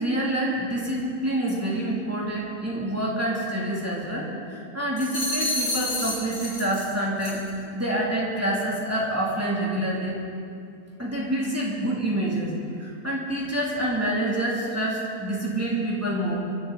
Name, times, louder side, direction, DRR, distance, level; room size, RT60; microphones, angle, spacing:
voice 1, 0.0-7.4 7.7-10.2 11.0-16.3, right 1 dB, 10° right, -5 dB, 2.7 m, -27 dB
sound 1, 5.0-6.9 7.2-7.5, left 1 dB, 90° left, 4.8 m, -29 dB
23.5 x 11.5 x 4.0 m, 2.5 s
omnidirectional pair, 1.6 m